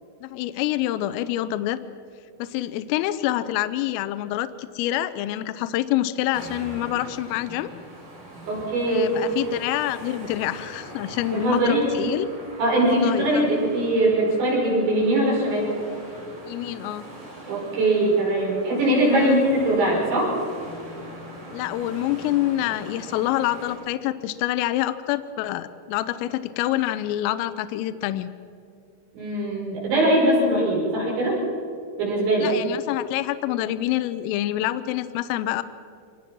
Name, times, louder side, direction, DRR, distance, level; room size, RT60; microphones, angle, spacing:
voice 1, 0.2-1.8 2.4-7.7 8.9-12.3 12.9-13.5 16.5-17.0 19.1-19.4 21.5-28.3 32.4-35.6, left 14 dB, 85° left, 13 dB, 3.2 m, -26 dB
sound 1, 6.3-23.7, right 1 dB, 85° right, 10.5 m, -41 dB
voice 2, 8.5-9.1 11.3-11.9 12.6-15.7 17.5-20.3 29.1-31.4 32.0-32.5, right 1 dB, 60° right, -4 dB, 8.0 m, -21 dB
25.5 x 19.5 x 6.0 m, 2.4 s
omnidirectional pair, 6.0 m